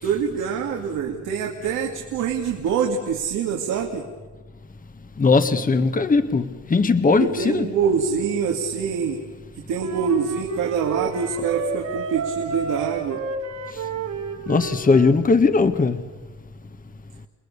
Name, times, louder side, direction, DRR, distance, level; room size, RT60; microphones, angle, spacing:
voice 1, 0.0-4.0 7.2-9.2 9.5-13.2, right 6 dB, 90° right, 2.5 m, -25 dB
voice 2, 5.2-7.7 14.5-16.0, left 4 dB, 30° left, 1.4 m, -19 dB
Wind instrument woodwind instrument, 9.8-15.2, right 5 dB, 75° right, 3.4 m, -31 dB
29.5 x 20.0 x 6.8 m
cardioid pair, 90°, 30 cm